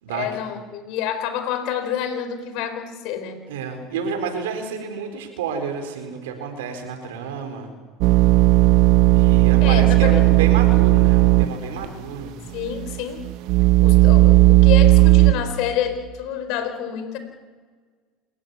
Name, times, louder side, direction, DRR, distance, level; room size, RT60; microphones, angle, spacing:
voice 1, 0.1-3.5 9.6-10.2 12.5-13.2 13.8-17.2, left 9 dB, 65° left, 9 dB, 4.4 m, -28 dB
voice 2, 3.5-7.7 9.1-12.4, right 6 dB, 90° right, 5 dB, 4.5 m, -30 dB
sound 1, 8.0-11.5 11.8-11.9 12.6-15.3, right 18 dB, 65° right, 1.0 m, -14 dB
27.5 x 14.5 x 9.9 m, 1.5 s
supercardioid pair, 105°, 0 cm